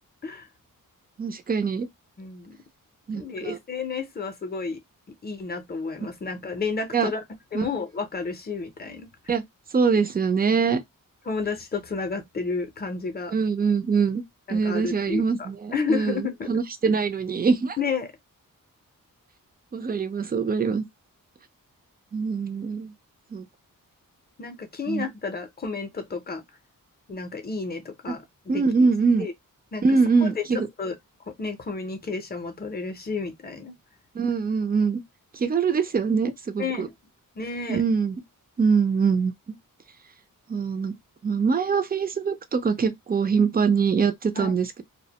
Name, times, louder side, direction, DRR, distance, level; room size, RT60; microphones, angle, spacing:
voice 1, 1.2-1.9 3.1-3.6 6.9-7.1 7.5-7.6 9.3-9.4 9.7-10.8 13.3-14.2 14.5-17.8 19.7-20.8 22.1-22.9 23.3-23.4 24.9-25.0 28.1-28.2 28.5-29.3 29.8-30.7 34.2-35.0 35.3-36.9 37.7-38.1 38.6-39.3 40.5-41.0 41.2-44.8, right 5 dB, 30° right, 0.4 m, -23 dB
voice 2, 2.2-2.6 3.1-4.8 5.1-7.2 7.5-9.1 11.3-13.3 14.5-16.5 17.8-18.1 24.4-26.4 27.1-28.6 29.2-29.3 29.7-29.8 30.2-30.4 30.8-30.9 31.3-33.8 36.6-36.9 37.4-37.8 44.4-44.5, left 4 dB, 30° left, 0.6 m, -31 dB
2.5 x 2.1 x 2.7 m
wide cardioid pair, 155°, 34 cm